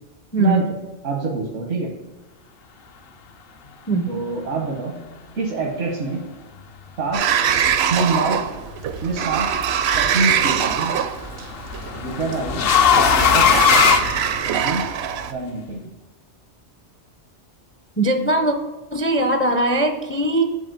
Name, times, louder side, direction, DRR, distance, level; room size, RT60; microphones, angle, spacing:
voice 1, 1.0-1.9 4.1-5.0 5.3-6.2 7.0-7.2 7.9-8.4 9.0-9.5 10.0-10.9 12.0-12.6 13.1-13.8 14.4-14.8 15.3-15.8, right 3 dB, 90° right, -2 dB, 1.4 m, -25 dB
Sliding door, 7.1-15.3, right 8 dB, 70° right, 0.8 m, -23 dB
sound 1, 8.9-9.4 10.9-14.8, left 7 dB, 60° left, 0.8 m, -18 dB
voice 2, 18.0-18.5 18.9-20.4, right 2 dB, 15° left, 5 dB, 0.4 m, -20 dB
7.3 x 4.0 x 6.6 m, 1.2 s
omnidirectional pair, 1.2 m